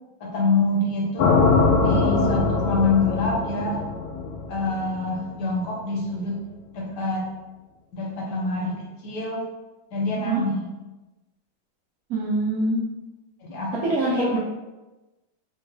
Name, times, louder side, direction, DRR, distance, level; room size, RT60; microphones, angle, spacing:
voice 1, 0.2-1.3 1.8-3.8 4.5-6.4 6.7-7.2 7.9-9.4 9.9-10.7 13.4-13.7 14.0-14.3, left 2 dB, 70° left, -2 dB, 1.1 m, -26 dB
sound 1, 1.2-5.3, left 4 dB, 85° left, 1.4 m, -22 dB
voice 2, 12.1-12.9 13.8-14.4, right 2 dB, 85° right, -6 dB, 0.7 m, -24 dB
3.5 x 2.1 x 3.2 m, 1.1 s
omnidirectional pair, 2.2 m